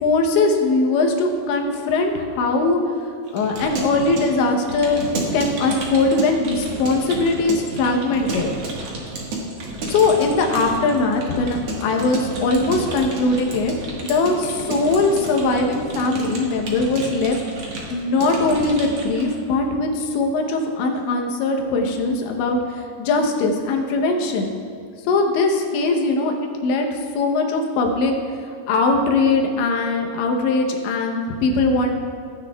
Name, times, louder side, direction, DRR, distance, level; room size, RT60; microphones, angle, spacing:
voice 1, 0.0-2.8 3.3-8.5 9.9-13.7 14.0-17.4 17.9-24.6 25.1-26.3 26.6-26.9 27.2-28.1 28.7-31.9, left 3 dB, 85° left, 2 dB, 3.3 m, -20 dB
Keyboard (musical) / Computer keyboard, 3.3-19.4, right 2 dB, 75° right, 1.4 m, -31 dB
17.0 x 9.7 x 2.3 m, 2.2 s
omnidirectional pair, 5.1 m